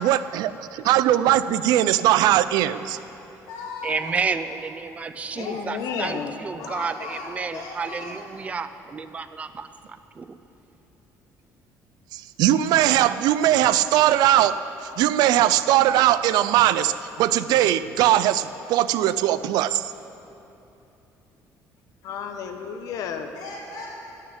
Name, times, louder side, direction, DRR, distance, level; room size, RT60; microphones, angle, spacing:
voice 1, 0.0-0.5 0.9-3.0 12.1-14.6 15.0-16.9 17.2-19.9, right 12 dB, 85° right, 14 dB, 0.5 m, -20 dB
voice 2, 3.3-4.1 5.3-6.3 6.5-8.3 23.3-23.9, left 3 dB, 80° left, -7 dB, 2.4 m, -37 dB
voice 3, 3.8-10.4, right 5 dB, 20° right, 11 dB, 0.5 m, -31 dB
voice 4, 5.3-6.7 22.0-23.3, left 7 dB, 60° left, 6 dB, 1.1 m, -32 dB
18.0 x 6.6 x 9.8 m, 2.9 s
cardioid pair, 180°, 7 cm